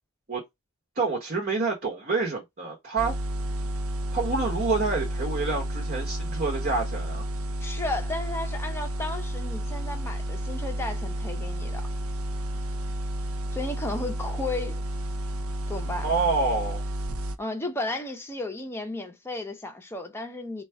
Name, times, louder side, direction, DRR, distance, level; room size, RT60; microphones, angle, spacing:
voice 1, 0.9-3.2 4.1-7.3 16.0-16.8, right 4 dB, 40° right, 1.0 m, -27 dB
sound 1, 3.0-17.4, right 1 dB, 70° right, 0.6 m, -31 dB
voice 2, 7.6-11.9 13.5-14.8 15.7-16.1 17.4-20.6, left 2 dB, 10° left, 0.7 m, -34 dB
3.7 x 2.4 x 4.3 m
head